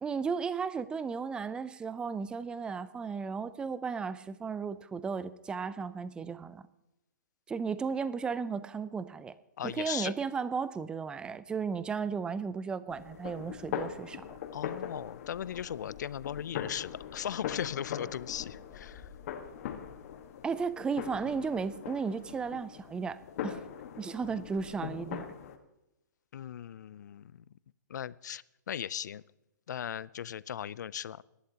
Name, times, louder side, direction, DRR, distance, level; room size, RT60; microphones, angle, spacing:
voice 1, 0.0-6.6 7.5-9.3 9.6-14.4 20.4-23.6 24.0-25.3, right 5 dB, 10° right, 16 dB, 0.4 m, -35 dB
voice 2, 9.6-10.1 14.5-19.1 26.3-27.4 27.9-29.2 29.7-31.2, left 9 dB, 65° left, 21 dB, 0.5 m, -38 dB
sound 1, 12.9-25.6, left 9 dB, 50° left, 1.4 m, -41 dB
22.0 x 11.5 x 2.9 m, 0.93 s
hypercardioid pair, 135°, 10 cm